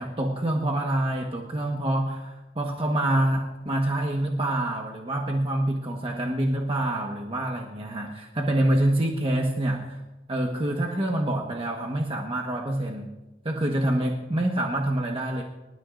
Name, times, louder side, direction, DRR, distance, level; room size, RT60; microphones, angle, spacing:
voice 1, 0.0-10.0 10.3-13.1 13.4-15.4, right 1 dB, 30° right, 0 dB, 1.3 m, -26 dB
25.5 x 13.5 x 2.6 m, 1.1 s
head